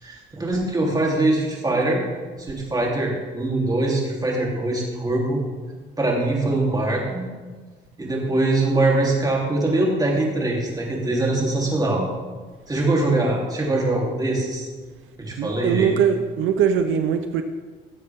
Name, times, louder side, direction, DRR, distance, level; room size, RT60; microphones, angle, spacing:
voice 1, 0.0-2.0 2.4-5.4 6.0-7.2 8.0-12.0 12.7-14.7 15.2-16.0, right 2 dB, 20° right, -3 dB, 3.5 m, -22 dB
voice 2, 15.4-17.4, right 8 dB, 80° right, 7 dB, 0.7 m, -21 dB
16.5 x 7.7 x 3.7 m, 1.4 s
cardioid pair, 90°, 20 cm